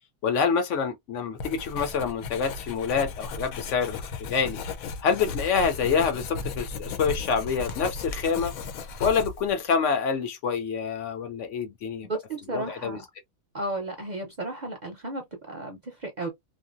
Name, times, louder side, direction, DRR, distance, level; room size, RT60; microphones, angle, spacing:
voice 1, 0.2-4.0 4.3-4.6 5.0-8.5 9.0-12.1 12.5-13.0, left 6 dB, 65° left, 0.9 m, -26 dB
Writing, 1.4-9.6, left 4 dB, 85° left, 1.1 m, -36 dB
voice 2, 12.0-13.0 13.5-16.3, right 2 dB, 45° right, 0.6 m, -34 dB
2.8 x 2.6 x 2.4 m
omnidirectional pair, 1.4 m